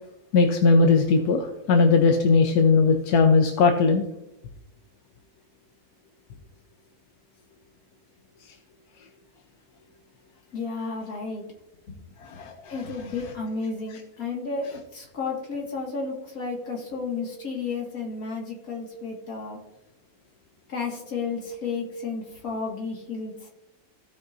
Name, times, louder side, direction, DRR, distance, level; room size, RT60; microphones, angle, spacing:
voice 1, 0.3-4.1 12.2-12.7, left 4 dB, 90° left, 4 dB, 1.3 m, -19 dB
voice 2, 10.5-11.5 11.9-12.0 12.7-19.6 20.7-23.5, left 4 dB, 65° left, -1 dB, 2.4 m, -32 dB
16.0 x 5.6 x 2.6 m, 0.88 s
omnidirectional pair, 1.6 m